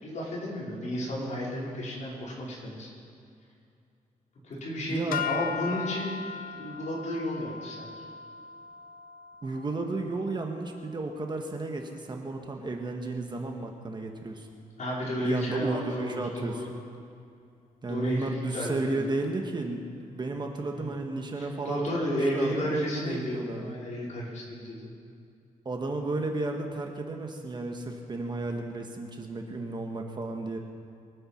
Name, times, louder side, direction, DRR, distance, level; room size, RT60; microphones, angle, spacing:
voice 1, 0.0-2.9 4.4-6.2 6.6-7.9 14.8-16.2 16.5-16.7 17.9-19.1 20.7-20.9 21.4-24.9, left 1 dB, 55° left, -5 dB, 4.9 m, -32 dB
voice 2, 4.9-5.2 9.4-14.5 15.2-16.8 17.8-23.8 25.6-30.6, right 2 dB, 30° right, 3 dB, 1.4 m, -33 dB
sound 1, 5.1-11.5, left 6 dB, 75° left, 0.6 m, -38 dB
23.5 x 9.2 x 5.8 m, 2.5 s
wide cardioid pair, 145°, 15 cm